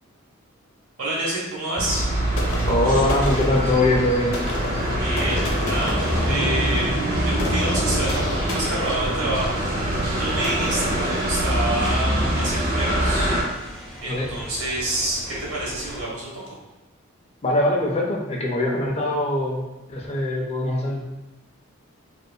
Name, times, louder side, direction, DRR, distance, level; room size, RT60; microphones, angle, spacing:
voice 1, 1.0-2.1 4.9-13.3 14.0-16.5, right 1 dB, 90° right, -5 dB, 1.0 m, -28 dB
sound 1, 1.8-13.4, right 1 dB, 40° right, 0.6 m, -24 dB
sound 2, 2.4-12.0, left 2 dB, 80° left, 0.6 m, -33 dB
voice 2, 2.7-4.4 14.1-14.3 17.4-21.0, left 1 dB, 30° left, -1 dB, 0.3 m, -22 dB
sound 3, 5.6-16.0, equal, ahead, 0.7 m, -39 dB
2.6 x 2.4 x 2.2 m, 1.0 s
head